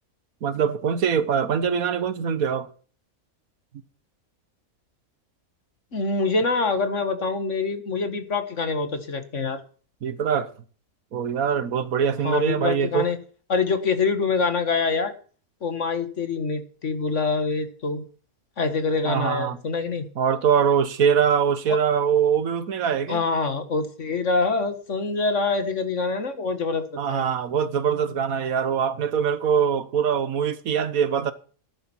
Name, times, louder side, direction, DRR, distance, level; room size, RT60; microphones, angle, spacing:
voice 1, 0.4-2.7 10.0-10.5 11.1-13.1 19.0-19.6 20.2-23.2 27.0-31.3, right 7 dB, 75° right, 1.5 m, -23 dB
voice 2, 5.9-9.6 12.2-13.2 13.5-15.1 15.6-18.0 18.6-20.1 23.1-26.8 27.1-27.2, left 4 dB, 55° left, 2.0 m, -25 dB
14.0 x 11.5 x 4.5 m
omnidirectional pair, 1.5 m